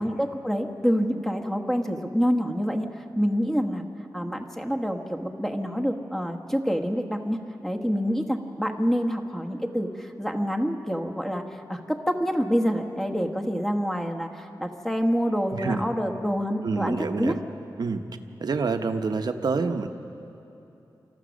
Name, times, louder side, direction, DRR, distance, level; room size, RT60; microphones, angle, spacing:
voice 1, 0.0-3.9 4.1-17.3, equal, 5° left, 3 dB, 1.3 m, -27 dB
voice 2, 15.5-15.8 16.6-17.4 17.8-18.0 18.4-19.9, right 4 dB, 60° right, 7 dB, 0.9 m, -27 dB
29.0 x 14.0 x 6.4 m, 2.9 s
wide cardioid pair, 105°, 8 cm